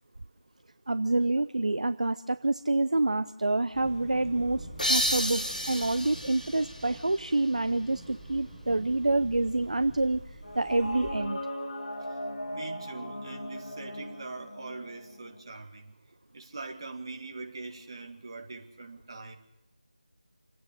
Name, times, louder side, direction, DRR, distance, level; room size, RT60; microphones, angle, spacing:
voice 1, 0.9-10.2 10.5-11.4, right 2 dB, 55° right, 12 dB, 0.6 m, -27 dB
sound 1, 3.7-11.1, right 1 dB, 5° left, 3.6 m, -46 dB
sound 2, 4.8-8.2, equal, 80° left, 4.5 m, -32 dB
sound 3, 10.4-15.4, equal, 55° left, 3.4 m, -38 dB
voice 2, 12.5-15.9 16.3-19.3, right 3 dB, 30° right, 2 dB, 2.2 m, -42 dB
28.0 x 9.5 x 9.8 m, 0.92 s
figure-of-eight pair, 165°, 4 cm